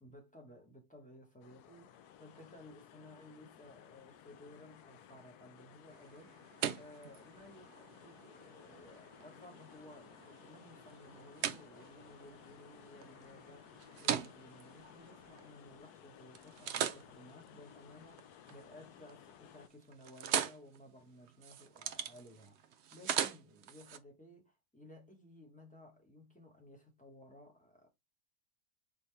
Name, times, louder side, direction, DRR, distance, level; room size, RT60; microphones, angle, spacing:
voice 1, 0.0-27.9, left 1 dB, 5° left, 1.2 m, -57 dB
sound 1, 1.4-19.7, left 10 dB, 85° left, 1.1 m, -58 dB
sound 2, 5.9-15.9 16.3-18.6 19.0-19.4 19.7-24.0, right 9 dB, 75° right, 0.6 m, -41 dB
4.1 x 3.7 x 3.3 m
omnidirectional pair, 1.6 m